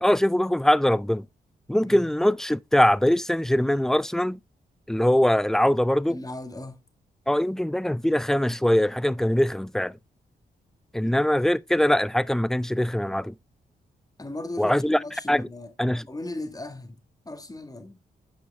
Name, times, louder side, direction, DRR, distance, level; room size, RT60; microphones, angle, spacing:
voice 1, 0.0-1.3 1.7-4.4 4.9-6.2 7.3-10.0 10.9-13.3 14.6-15.0 15.3-15.5 15.8-16.0, left 1 dB, ahead, 0.4 m, -22 dB
voice 2, 6.1-6.8 11.0-11.3 14.2-15.7 16.0-18.0, left 2 dB, 20° left, 1.7 m, -38 dB
8.6 x 5.1 x 3.5 m
supercardioid pair, 50°, 18 cm